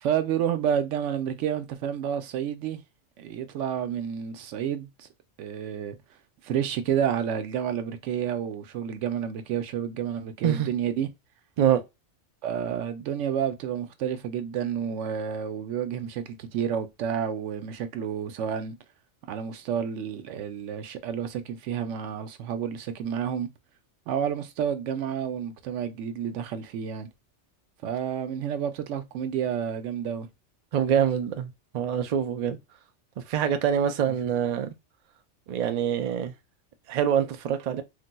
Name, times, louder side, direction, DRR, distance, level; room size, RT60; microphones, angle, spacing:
voice 1, 0.0-2.8 3.2-5.1 5.4-6.0 6.4-11.1 12.4-18.8 19.3-23.5 24.1-27.1 27.8-30.3 34.1-34.2, right 8 dB, 90° right, 0.9 m, -30 dB
voice 2, 30.7-32.6 33.2-34.7 35.5-36.3 36.9-37.8, right 9 dB, 60° right, 0.4 m, -25 dB
3.9 x 2.5 x 2.2 m
omnidirectional pair, 1.2 m